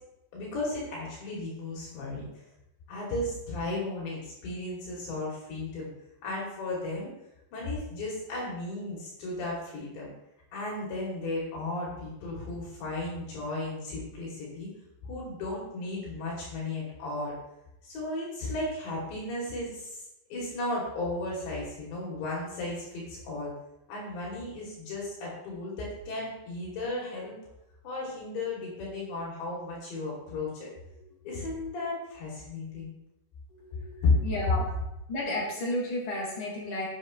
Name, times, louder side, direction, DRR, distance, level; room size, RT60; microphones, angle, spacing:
voice 1, 0.3-2.2 2.9-5.9 6.2-7.1 7.5-10.1 10.5-14.7 15.0-17.3 17.8-20.0 20.3-23.5 23.9-27.4 27.8-30.7 31.2-32.9 34.0-34.2, left 2 dB, 70° left, -5 dB, 5.3 m, -34 dB
voice 2, 33.5-34.7 35.1-36.9, left 1 dB, 25° left, -6 dB, 5.4 m, -33 dB
20.0 x 7.2 x 3.3 m, 0.89 s
omnidirectional pair, 5.4 m